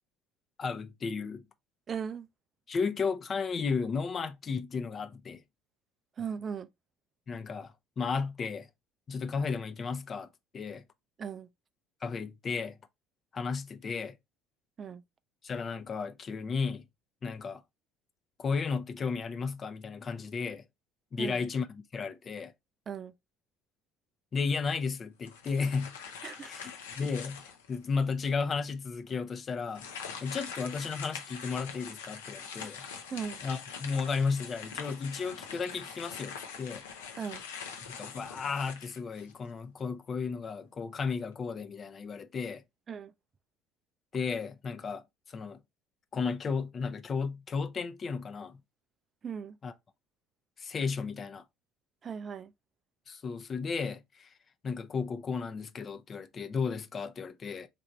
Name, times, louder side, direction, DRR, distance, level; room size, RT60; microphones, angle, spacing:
voice 1, 0.6-1.4 2.7-5.4 7.3-8.7 9.1-10.3 10.5-10.8 12.0-12.8 13.3-14.2 15.4-16.8 17.2-17.6 18.4-20.6 21.1-22.5 24.3-26.0 26.4-26.7 27.0-29.8 30.2-32.9 33.4-36.8 37.9-42.6 44.1-45.6 46.1-48.6 49.6-49.7 50.6-51.4 53.1-54.3 54.6-57.7, left 5 dB, 40° left, 0.6 m, -34 dB
voice 2, 1.9-2.3 6.2-6.7 11.2-11.5 14.8-15.0 21.2-21.4 22.9-23.1 26.2-26.5 33.1-33.4 37.2-37.4 42.9-43.1 49.2-49.6 52.0-52.5, right 7 dB, 40° right, 0.4 m, -37 dB
sound 1, 25.2-27.8 28.3-28.4 29.7-39.5, left 6 dB, 80° left, 0.6 m, -43 dB
3.3 x 2.6 x 4.0 m
hypercardioid pair, 65°, 0 cm